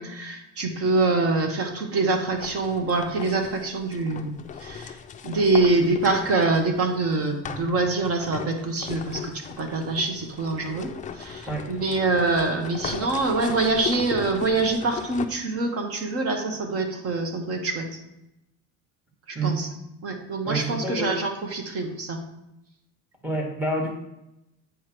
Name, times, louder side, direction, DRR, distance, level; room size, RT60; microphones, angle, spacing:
voice 1, 0.0-4.3 4.6-5.0 5.2-18.0 19.3-19.7 20.0-22.2, right 3 dB, 45° right, 4 dB, 1.3 m, -25 dB
sound 1, 2.2-6.8 7.4-15.3, left 7 dB, 25° left, 0.4 m, -38 dB
voice 2, 20.4-21.1 23.2-23.9, right 2 dB, 5° right, 1 dB, 1.5 m, -27 dB
8.3 x 3.2 x 6.0 m, 0.88 s
cardioid pair, 130°, 33 cm